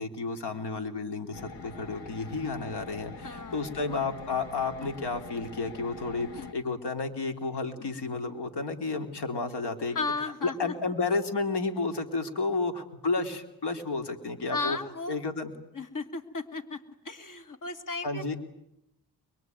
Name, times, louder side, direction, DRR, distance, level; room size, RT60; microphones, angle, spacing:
voice 1, 0.0-10.0 10.4-14.8 15.1-15.5 18.0-18.4, left 3 dB, 65° left, 6 dB, 3.3 m, -31 dB
sound 1, 1.3-6.5, left 4 dB, 90° left, 1.8 m, -44 dB
voice 2, 3.2-4.1 6.4-6.5 7.8-7.9 9.9-10.9 14.5-15.2 15.7-18.3, left 3 dB, 45° left, 7 dB, 2.9 m, -35 dB
23.5 x 23.0 x 9.4 m, 0.85 s
cardioid pair, 75°, 43 cm